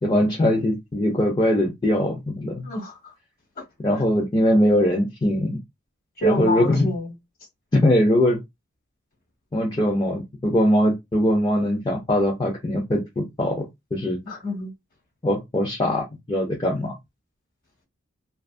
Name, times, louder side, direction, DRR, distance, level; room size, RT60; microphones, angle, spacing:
voice 1, 0.0-2.7 3.8-5.6 6.2-6.9 7.7-8.4 9.5-14.2 15.2-16.9, left 1 dB, 20° left, 0.4 m, -21 dB
voice 2, 2.6-3.1 6.2-7.1 14.2-14.7, equal, 45° left, 1.1 m, -26 dB
2.4 x 2.3 x 2.4 m
head